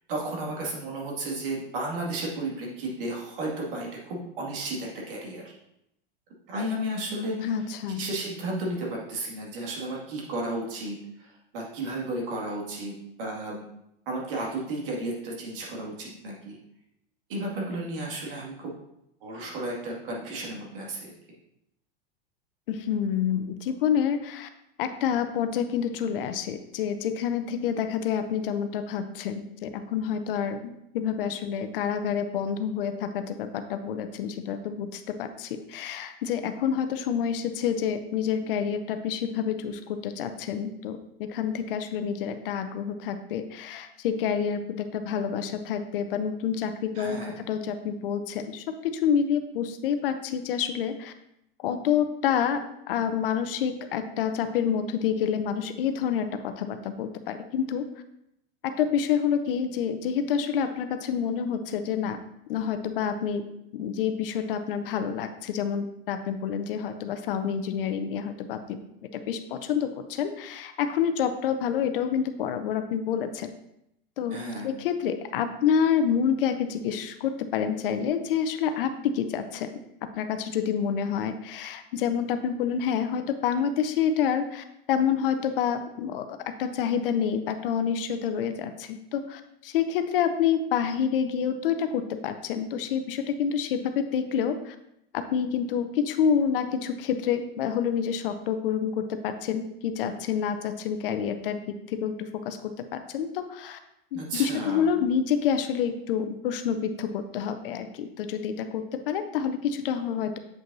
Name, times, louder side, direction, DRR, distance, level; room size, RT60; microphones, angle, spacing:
voice 1, 0.1-5.4 6.5-7.5 8.0-13.6 14.1-16.6 17.3-18.7 19.2-21.1 47.0-47.4 74.3-74.7 104.1-104.9, right 1 dB, 65° right, -2 dB, 2.2 m, -33 dB
voice 2, 7.4-8.0 22.7-24.5 24.8-51.1 51.6-57.9 58.6-62.2 62.5-63.4 63.7-68.8 69.1-73.5 74.2-74.4 74.6-79.7 80.2-94.8 95.1-103.8 104.1-110.4, left 8 dB, 65° left, 9 dB, 0.7 m, -28 dB
7.8 x 5.1 x 2.7 m, 0.81 s
hypercardioid pair, 105°, 30 cm